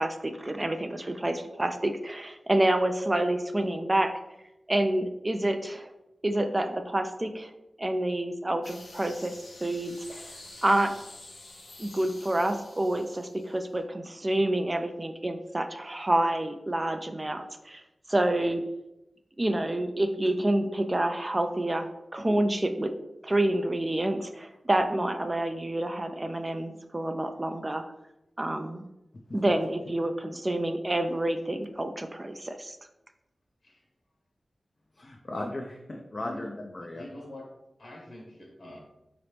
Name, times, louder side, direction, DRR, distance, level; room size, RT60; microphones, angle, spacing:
voice 1, 0.0-4.1 4.7-5.9 6.2-7.5 7.8-9.4 9.6-10.9 11.8-17.8 18.1-18.6 19.4-21.9 22.1-22.9 23.2-27.8 28.4-28.9 29.3-32.8, right 1 dB, 25° right, 7 dB, 0.3 m, -28 dB
sound 1, 8.6-13.8, left 2 dB, 80° left, 0.8 m, -48 dB
voice 2, 35.0-37.0, left 1 dB, 45° left, 1 dB, 0.4 m, -37 dB
voice 3, 36.2-37.5 37.8-38.8, left 1 dB, 65° left, -1 dB, 1.2 m, -45 dB
3.9 x 2.9 x 3.2 m, 0.91 s
wide cardioid pair, 60°, 0 cm